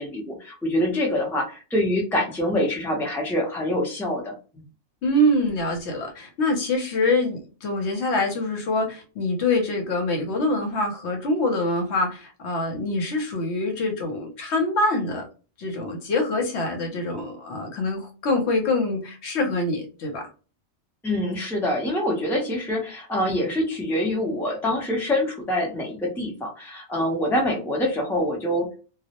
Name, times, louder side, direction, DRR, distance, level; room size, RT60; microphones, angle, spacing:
voice 1, 0.0-4.6 21.0-28.7, left 1 dB, 5° left, -1 dB, 0.4 m, -25 dB
voice 2, 5.0-15.3 15.6-20.3, left 2 dB, 70° left, 3 dB, 0.9 m, -25 dB
2.2 x 2.0 x 2.8 m, 0.34 s
omnidirectional pair, 1.2 m